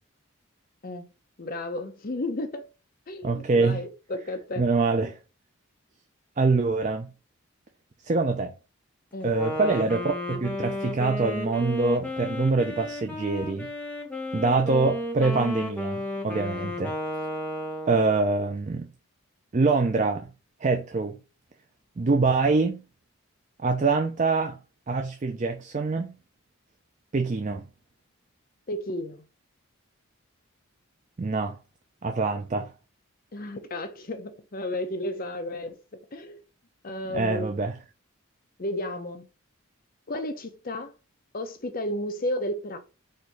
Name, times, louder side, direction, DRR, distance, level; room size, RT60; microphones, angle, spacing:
voice 1, 1.4-2.6 3.1-4.6 9.1-9.3 16.6-16.8 28.7-29.2 33.3-35.8 36.1-36.4 36.8-37.4 38.6-39.3 40.1-40.9 41.3-42.8, left 1 dB, 40° left, 0.6 m, -33 dB
voice 2, 3.2-3.8 4.6-5.2 6.4-7.1 8.0-8.5 9.2-13.7 14.3-16.9 17.9-18.9 19.5-20.3 20.6-21.2 22.0-22.8 23.6-24.6 24.9-26.2 27.1-27.6 31.2-31.5 32.0-32.7 37.1-37.8, right 3 dB, 35° right, 0.4 m, -25 dB
Wind instrument woodwind instrument, 9.2-18.2, left 1 dB, 5° left, 0.8 m, -33 dB
4.3 x 2.6 x 4.6 m
head